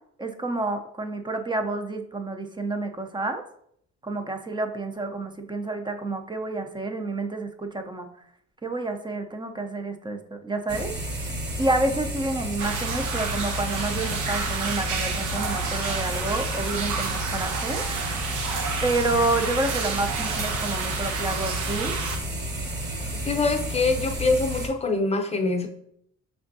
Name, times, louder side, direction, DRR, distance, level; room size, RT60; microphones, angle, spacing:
voice 1, 0.2-3.4 4.0-8.1 8.6-11.2 11.6-17.8 18.8-21.9, right 2 dB, 15° right, 6 dB, 0.5 m, -29 dB
sound 1, 10.7-24.7, equal, 35° right, 1.1 m, -32 dB
sound 2, 12.6-22.2, right 5 dB, 85° right, 0.8 m, -30 dB
voice 2, 23.3-25.7, left 3 dB, 20° left, 4 dB, 0.7 m, -24 dB
5.6 x 3.4 x 2.7 m, 0.70 s
cardioid pair, 90°, 30 cm